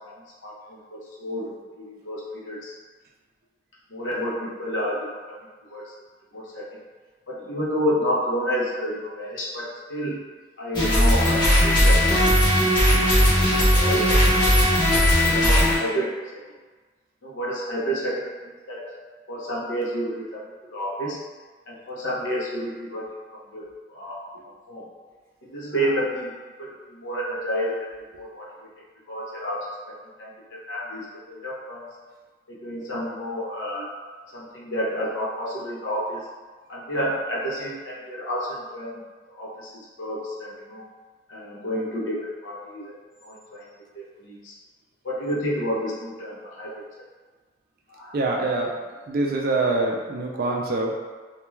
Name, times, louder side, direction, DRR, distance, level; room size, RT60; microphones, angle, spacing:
voice 1, 0.4-2.7 3.9-5.4 5.7-5.9 6.3-6.7 7.3-10.2 10.6-12.6 13.1-14.7 14.9-16.4 17.2-19.0 19.3-20.4 20.7-21.2 21.7-23.1 23.3-24.2 24.7-24.9 25.4-26.3 26.6-27.9 28.2-28.5 29.1-31.9 32.5-33.9 34.3-36.2 36.7-39.0 39.3-40.8 41.3-42.9 43.2-43.7 43.9-44.5 45.0-46.8 47.9-48.2, equal, 80° left, -5 dB, 0.6 m, -30 dB
sound 1, 10.7-15.8, equal, 25° left, 0.8 m, -18 dB
voice 2, 48.1-48.7 49.1-51.0, right 2 dB, 50° right, 0 dB, 0.4 m, -24 dB
2.3 x 2.2 x 3.1 m, 1.4 s
head